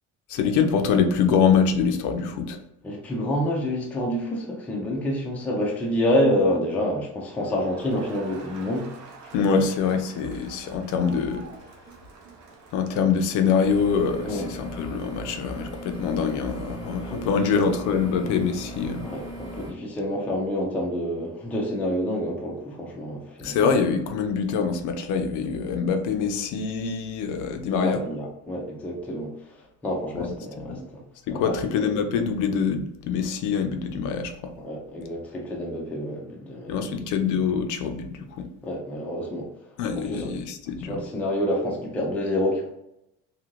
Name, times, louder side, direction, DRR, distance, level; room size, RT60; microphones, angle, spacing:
voice 1, 0.3-2.6 9.3-11.5 12.7-19.1 23.4-28.0 30.1-30.3 30.6-30.8 31.3-34.5 36.7-38.5 39.8-41.0, left 6 dB, 65° left, 6 dB, 0.5 m, -24 dB
voice 2, 2.8-8.9 9.4-9.6 14.2-14.5 17.1-17.6 19.0-23.6 27.3-27.4 27.7-29.3 29.8-31.0 31.3-31.5 34.6-37.0 38.6-39.5 39.9-40.3 40.8-42.7, left 1 dB, 5° left, -2 dB, 0.3 m, -28 dB
Crowd, 7.4-14.4, right 4 dB, 60° right, 0.8 m, -47 dB
sound 1, 13.6-19.7, right 1 dB, 10° right, 1.1 m, -39 dB
2.7 x 2.5 x 3.0 m, 0.85 s
cardioid pair, 160°, 32 cm